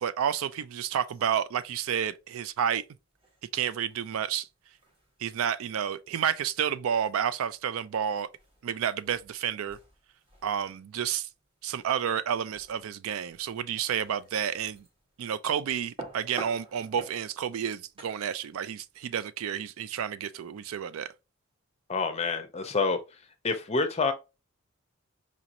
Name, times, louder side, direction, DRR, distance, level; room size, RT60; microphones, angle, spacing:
voice 1, 0.0-2.8 3.5-4.5 5.2-8.3 8.6-9.8 10.4-11.3 11.6-14.9 15.2-21.1, right 8 dB, 70° right, 0.3 m, -30 dB
sound 1, 1.1-19.3, right 2 dB, 25° right, 1.1 m, -51 dB
voice 2, 21.9-23.0 23.4-24.1, left 4 dB, 30° left, 0.6 m, -27 dB
5.0 x 2.9 x 2.5 m
head